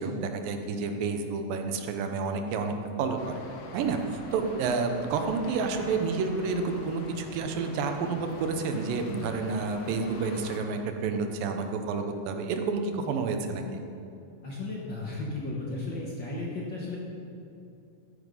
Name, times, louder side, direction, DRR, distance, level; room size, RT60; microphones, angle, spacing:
voice 1, 0.0-3.4 3.7-13.8, right 4 dB, 85° right, 5 dB, 2.7 m, -30 dB
sound 1, 3.2-10.6, left 3 dB, 75° left, 1.1 m, -44 dB
voice 2, 14.4-17.0, left 2 dB, 45° left, -4 dB, 1.6 m, -34 dB
13.5 x 10.0 x 5.5 m, 2.8 s
omnidirectional pair, 3.9 m